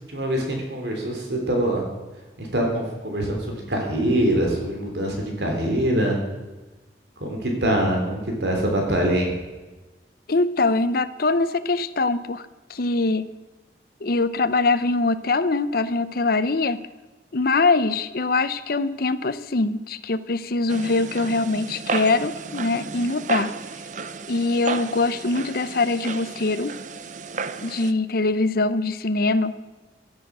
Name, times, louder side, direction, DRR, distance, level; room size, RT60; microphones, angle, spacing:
voice 1, 0.1-1.9 2.4-6.2 7.2-9.3, right 1 dB, 75° right, 1 dB, 3.4 m, -24 dB
voice 2, 10.3-12.4 12.7-13.3 14.0-16.8 17.3-23.5 24.3-26.7 27.6-29.6, left 3 dB, 55° left, 12 dB, 0.7 m, -23 dB
sound 1, 20.7-27.9, right 5 dB, 45° right, 0.8 m, -33 dB
16.5 x 11.5 x 6.2 m, 1.2 s
head